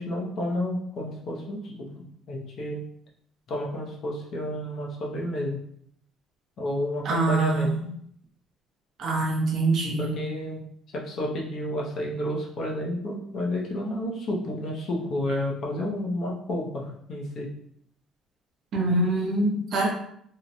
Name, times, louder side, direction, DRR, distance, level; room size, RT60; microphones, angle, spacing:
voice 1, 0.0-2.8 3.5-5.6 6.6-7.8 10.0-10.6 10.9-17.5, left 1 dB, 45° left, -1 dB, 0.5 m, -31 dB
voice 2, 7.0-7.7 9.0-10.2 18.7-19.9, right 2 dB, 45° right, -2 dB, 0.6 m, -24 dB
2.8 x 2.1 x 2.5 m, 0.67 s
cardioid pair, 170°, 0 cm